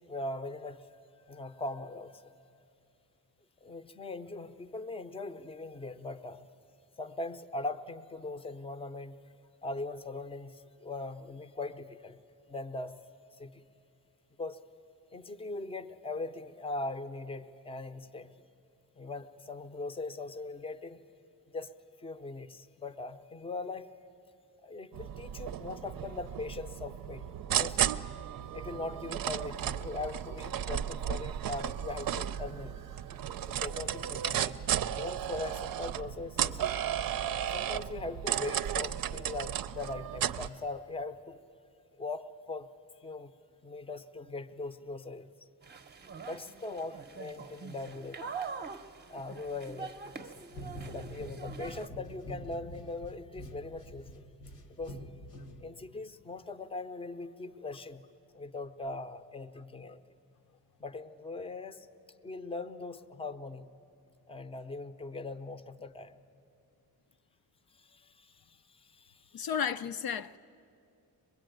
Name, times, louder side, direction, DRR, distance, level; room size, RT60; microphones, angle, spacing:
voice 1, 0.1-0.8 1.3-2.2 3.6-6.5 7.0-9.2 9.6-12.2 12.5-13.0 13.4-13.6 14.4-14.6 15.1-18.3 19.0-21.0 21.5-21.7 22.0-23.9 24.6-27.8 28.5-32.8 33.4-34.6 34.9-36.8 37.5-41.4 42.0-42.7 43.0-43.3 43.6-45.3 46.2-48.2 49.1-50.4 50.8-54.2 54.8-55.0 55.6-58.0 58.3-60.0 60.8-61.9 62.2-63.7 64.3-66.1 67.8-69.5, left 2 dB, 15° left, 0.6 m, -40 dB
sound 1, 24.9-40.5, right 10 dB, 65° right, 0.6 m, -34 dB
sound 2, 45.6-51.9, right 5 dB, 25° right, 0.7 m, -44 dB
sound 3, 50.5-56.0, equal, 90° left, 1.8 m, -46 dB
voice 2, 69.3-70.4, left 7 dB, 70° left, 0.6 m, -33 dB
23.5 x 21.5 x 9.2 m
wide cardioid pair, 155°, 38 cm